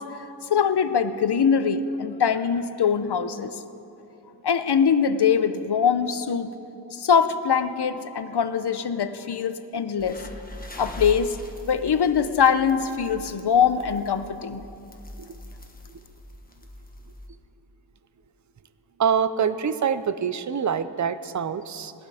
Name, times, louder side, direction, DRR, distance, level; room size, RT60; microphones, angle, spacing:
voice 1, 0.0-3.6 4.4-6.5 6.9-10.2 10.8-11.4 11.7-14.6, left 7 dB, 60° left, 12 dB, 0.7 m, -23 dB
sound 1, 10.0-17.3, left 1 dB, 20° left, 1.4 m, -41 dB
voice 2, 19.0-21.9, right 7 dB, 40° right, 13 dB, 0.6 m, -25 dB
18.0 x 12.0 x 4.9 m, 2.8 s
wide cardioid pair, 75°, 46 cm